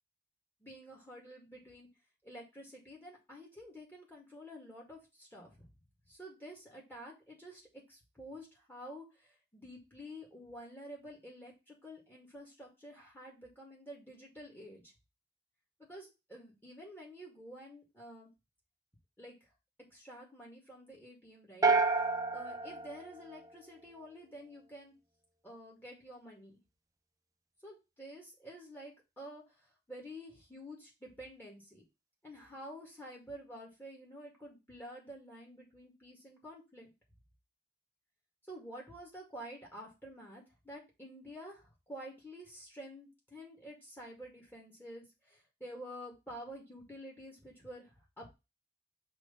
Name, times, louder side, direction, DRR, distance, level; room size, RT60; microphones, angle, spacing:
voice 1, 0.6-1.9 2.2-5.7 6.1-14.9 15.8-18.3 19.2-19.4 19.9-21.7 22.3-24.9 25.4-26.6 27.6-29.4 29.9-31.8 32.2-36.9 38.5-48.3, equal, 10° left, -3 dB, 2.1 m, -49 dB
sound 1, 21.6-23.9, right 3 dB, 20° right, 0.4 m, -30 dB
5.9 x 3.2 x 5.6 m, 0.25 s
head